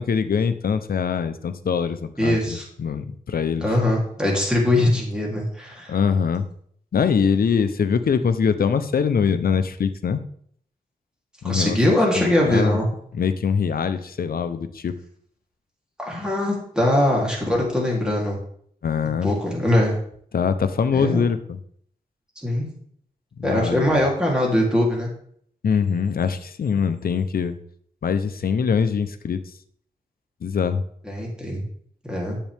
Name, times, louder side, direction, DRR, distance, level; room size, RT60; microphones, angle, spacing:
voice 1, 0.0-3.6 5.9-6.5 6.9-10.2 11.4-11.8 12.2-12.8 13.1-14.9 18.8-19.3 20.3-21.6 23.4-24.1 25.6-27.6 28.0-29.4 30.4-30.8, left 6 dB, 70° left, 10 dB, 0.7 m, -23 dB
voice 2, 2.2-2.6 3.6-6.0 11.4-12.8 16.0-18.4 19.2-20.0 20.9-21.2 22.4-22.7 23.4-25.1 31.0-31.6 32.0-32.4, left 1 dB, 5° right, -3 dB, 3.2 m, -21 dB
10.0 x 7.5 x 3.5 m, 0.63 s
wide cardioid pair, 95°, 16 cm